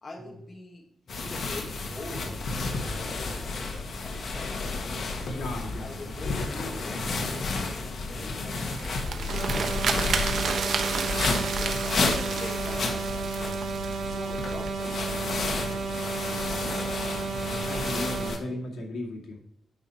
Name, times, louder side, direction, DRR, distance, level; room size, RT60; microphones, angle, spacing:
voice 1, 0.0-10.9 11.2-13.6 14.0-16.7, left 2 dB, 30° left, 0 dB, 1.7 m, -45 dB
sound 1, 1.1-18.4, left 3 dB, 55° left, 1.5 m, -32 dB
voice 2, 5.3-5.9 11.7-11.8 17.3-19.4, left 1 dB, 75° left, 0 dB, 2.2 m, -36 dB
sound 2, 8.6-14.7, right 5 dB, 60° right, 1.1 m, -32 dB
sound 3, 9.3-18.3, right 4 dB, 80° right, 2.3 m, -33 dB
9.6 x 5.6 x 4.3 m, 0.78 s
wide cardioid pair, 130°, 0 cm